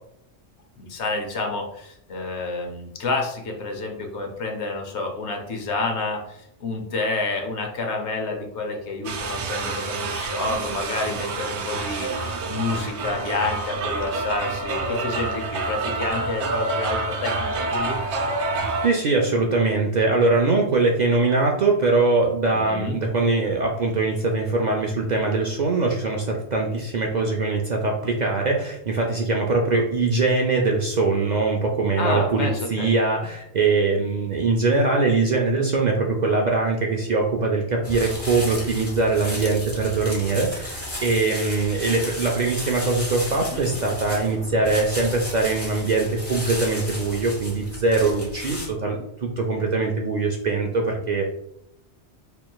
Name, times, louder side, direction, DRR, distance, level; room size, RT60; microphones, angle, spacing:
voice 1, 0.8-12.1 12.5-18.0 22.5-23.0 32.0-32.9 43.3-43.7, left 3 dB, 75° left, 3 dB, 1.0 m, -29 dB
sound 1, 9.0-18.9, right 3 dB, 75° right, 0.9 m, -28 dB
voice 2, 18.8-51.3, right 3 dB, 55° right, 0 dB, 0.5 m, -22 dB
sound 2, 37.8-48.7, left 1 dB, 15° left, 0.8 m, -34 dB
4.4 x 3.0 x 2.3 m, 0.77 s
omnidirectional pair, 1.2 m